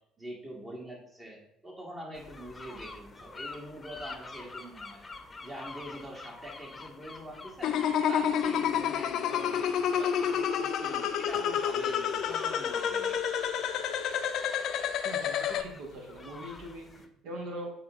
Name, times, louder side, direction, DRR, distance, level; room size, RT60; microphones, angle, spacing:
voice 1, 0.2-5.0 5.4-7.8 8.1-13.2, equal, 30° right, -2 dB, 1.9 m, -44 dB
sound 1, 2.1-17.1, left 3 dB, 25° left, 0.8 m, -48 dB
sound 2, 7.6-15.6, left 8 dB, 60° left, 0.5 m, -29 dB
voice 2, 15.0-17.7, right 1 dB, 65° right, 0 dB, 1.5 m, -42 dB
6.5 x 3.9 x 3.6 m, 0.75 s
hypercardioid pair, 55°, 0 cm